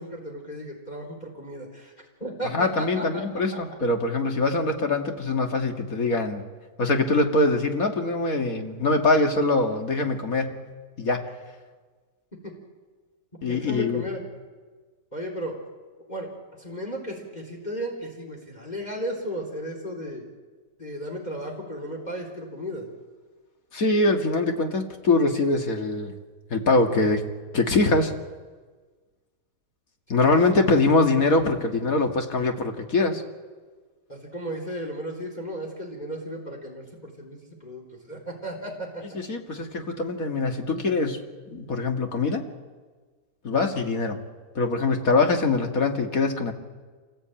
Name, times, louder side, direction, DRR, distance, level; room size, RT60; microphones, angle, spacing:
voice 1, 0.0-1.9 2.2-3.4 3.7-3.8 13.5-14.2 15.1-15.6 16.1-16.3 16.6-20.3 20.8-22.9 30.1-30.6 34.1-39.0, equal, 25° left, 0 dB, 3.7 m, -35 dB
voice 2, 2.5-6.4 6.8-10.6 11.0-11.3 13.4-14.0 23.7-26.1 26.5-27.2 27.5-28.1 30.1-33.2 39.1-42.5 43.4-44.2 44.6-46.5, left 3 dB, 55° left, 4 dB, 2.4 m, -23 dB
27.0 x 19.5 x 9.0 m, 1.4 s
omnidirectional pair, 1.9 m